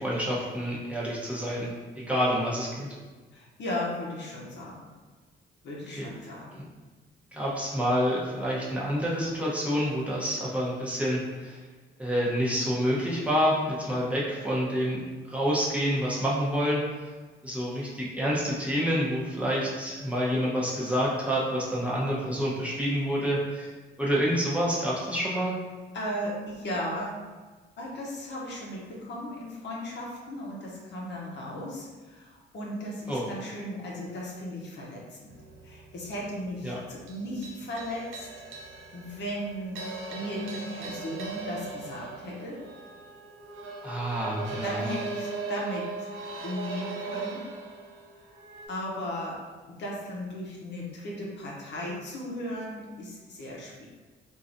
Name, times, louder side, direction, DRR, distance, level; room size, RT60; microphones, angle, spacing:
voice 1, 0.0-2.9 6.0-6.1 7.3-11.6 12.0-15.0 15.2-16.8 17.4-23.7 24.0-25.6 33.1-33.2 36.6-36.8 43.8-44.8, equal, 5° right, -6 dB, 0.8 m, -28 dB
voice 2, 3.3-4.8 5.6-6.6 25.9-27.2 27.8-35.3 35.6-38.3 38.9-39.8 40.1-42.6 44.6-46.1 46.4-47.4 48.2-48.3 48.7-53.9, equal, 60° left, -3 dB, 0.8 m, -36 dB
sound 1, 35.3-48.7, right 4 dB, 80° right, 0.5 m, -39 dB
3.1 x 2.5 x 2.5 m, 1.4 s
cardioid pair, 90°, 20 cm